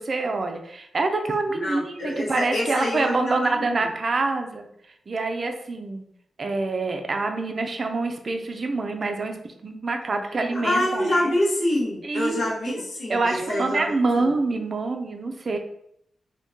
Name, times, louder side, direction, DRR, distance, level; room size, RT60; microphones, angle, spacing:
voice 1, 0.0-4.7 5.1-6.0 6.4-11.3 12.0-12.8 13.1-15.6, right 3 dB, 40° right, 5 dB, 0.4 m, -26 dB
voice 2, 1.5-3.7 10.5-14.3, left 1 dB, 90° left, -6 dB, 1.2 m, -26 dB
3.6 x 2.7 x 2.7 m, 0.73 s
wide cardioid pair, 140°, 0 cm